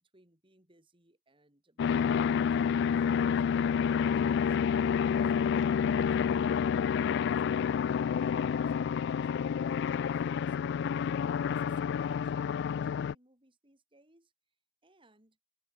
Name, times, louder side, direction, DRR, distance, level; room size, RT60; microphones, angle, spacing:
voice 1, 0.0-11.2 11.5-14.3 14.8-15.4, right 1 dB, 25° right, 4.7 m, -65 dB
sound 1, 1.8-13.1, left 7 dB, 60° left, 0.3 m, -29 dB
head